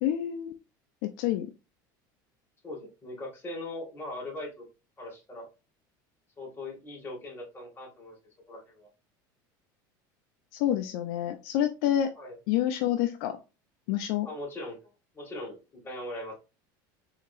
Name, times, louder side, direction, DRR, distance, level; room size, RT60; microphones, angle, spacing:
voice 1, 0.0-0.5 1.0-1.5 10.5-12.1 12.5-13.4 13.9-14.3, left 11 dB, 70° left, 7 dB, 0.5 m, -28 dB
voice 2, 2.6-4.6 5.0-5.5 6.4-8.2 8.5-8.9 12.2-12.4 14.2-15.6 15.8-16.3, left 1 dB, 20° left, -2 dB, 2.2 m, -40 dB
4.4 x 2.8 x 2.5 m, 0.29 s
supercardioid pair, 95°, 11 cm